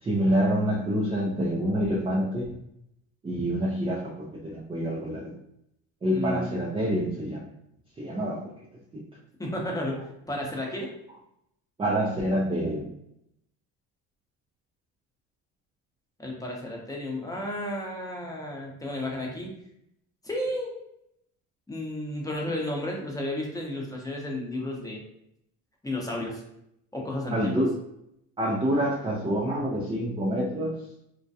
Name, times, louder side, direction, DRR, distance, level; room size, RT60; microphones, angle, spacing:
voice 1, 0.0-2.6 3.2-5.4 6.0-7.5 8.0-8.5 8.9-9.0 11.8-12.9 27.3-27.8 28.4-30.8, equal, 15° right, -2 dB, 0.4 m, -27 dB
voice 2, 6.1-6.5 9.4-10.0 10.3-10.9 16.2-19.5 20.2-20.7 21.7-25.0 25.8-26.4 26.9-27.7, left 1 dB, 10° left, -2 dB, 0.8 m, -32 dB
2.3 x 2.2 x 2.6 m, 0.77 s
supercardioid pair, 80°, 37 cm